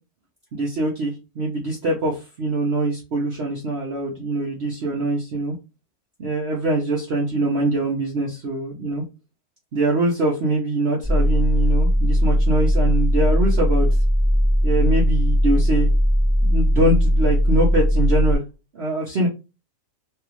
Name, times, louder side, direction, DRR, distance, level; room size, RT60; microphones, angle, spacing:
voice 1, 0.5-5.5 6.2-9.0 9.7-13.9 14.6-15.9 16.4-18.4 18.7-19.3, right 2 dB, 50° right, -3 dB, 0.9 m, -23 dB
sound 1, 11.0-18.4, equal, 10° right, 1.2 m, -18 dB
3.4 x 2.4 x 3.0 m, 0.28 s
omnidirectional pair, 1.6 m